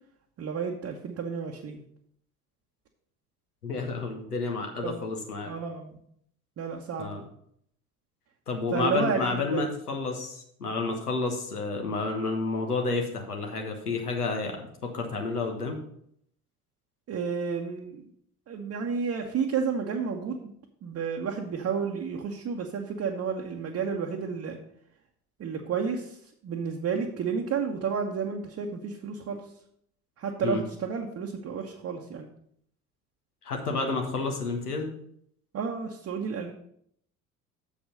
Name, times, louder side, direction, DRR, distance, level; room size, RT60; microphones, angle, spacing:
voice 1, 0.4-1.8 4.8-5.0 5.4-6.0 6.6-7.1 8.7-9.6 17.1-18.0 18.5-20.5 20.8-24.6 25.4-29.4 30.2-32.3 35.5-36.5, right 6 dB, 35° right, 0 dB, 1.0 m, -31 dB
voice 2, 3.6-5.5 7.0-7.2 8.5-15.8 30.4-30.6 33.4-34.9, left 3 dB, 85° left, 2 dB, 1.3 m, -30 dB
7.1 x 5.0 x 6.4 m, 0.68 s
figure-of-eight pair, 60°, 45 cm